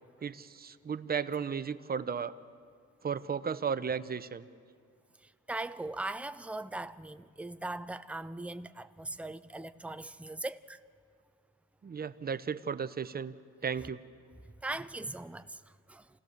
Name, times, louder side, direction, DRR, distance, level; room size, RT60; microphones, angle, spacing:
voice 1, 0.2-2.4 3.0-4.5 11.8-13.3 13.6-14.0, right 6 dB, 30° right, 0.8 m, -34 dB
voice 2, 5.2-10.8 14.6-15.6 15.9-16.1, right 2 dB, 5° right, 0.6 m, -39 dB
28.0 x 17.0 x 6.7 m
cardioid pair, 90°, 30 cm